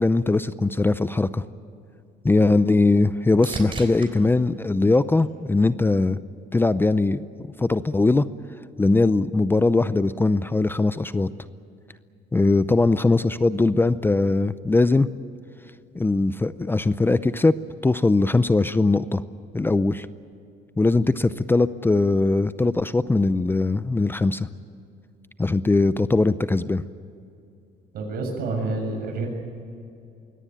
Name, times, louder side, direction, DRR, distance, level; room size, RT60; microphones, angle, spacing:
voice 1, 0.0-1.4 2.2-6.2 6.5-8.3 8.8-11.3 12.3-15.1 15.9-17.6 17.8-19.2 19.5-20.1 20.8-24.5 25.4-26.8, left 3 dB, 15° left, 14 dB, 0.6 m, -20 dB
sound 1, 1.7-5.9 6.4-7.0 14.9-15.0, right 4 dB, 30° right, 3.8 m, -40 dB
voice 2, 27.9-29.3, right 3 dB, 65° right, 2 dB, 7.1 m, -28 dB
23.0 x 18.0 x 9.3 m, 2.6 s
cardioid pair, 110°, 17 cm